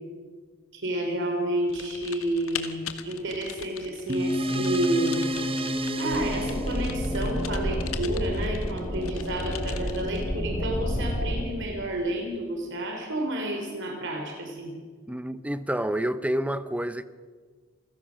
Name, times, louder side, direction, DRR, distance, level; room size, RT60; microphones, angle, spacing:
voice 1, 0.7-5.3 5.9-14.7, right 1 dB, 60° right, 3.4 m, -30 dB
Typing, 1.7-10.3, left 9 dB, 85° left, 1.5 m, -41 dB
sound 1, 4.1-8.9, equal, 25° right, 1.2 m, -30 dB
sound 2, 6.1-11.4, equal, 20° left, 4.4 m, -30 dB
voice 2, 15.1-17.0, right 1 dB, 5° right, 0.7 m, -28 dB
28.5 x 16.0 x 6.3 m
head